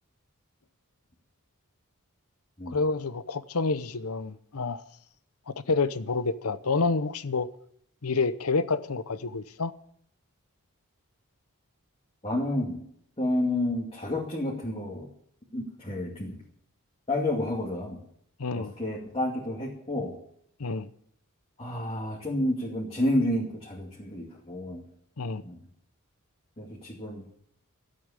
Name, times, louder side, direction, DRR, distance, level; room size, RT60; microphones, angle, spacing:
voice 1, 2.7-4.8 5.5-7.5 8.0-9.7 18.4-18.7 20.6-20.9 25.2-25.4, left 4 dB, 80° left, 0.8 m, -28 dB
voice 2, 12.2-12.8 13.2-15.1 15.5-16.4 17.1-18.0 18.5-20.1 21.6-24.8 25.4-25.6 26.6-27.3, left 1 dB, 25° left, 2.4 m, -30 dB
13.0 x 8.5 x 9.8 m
head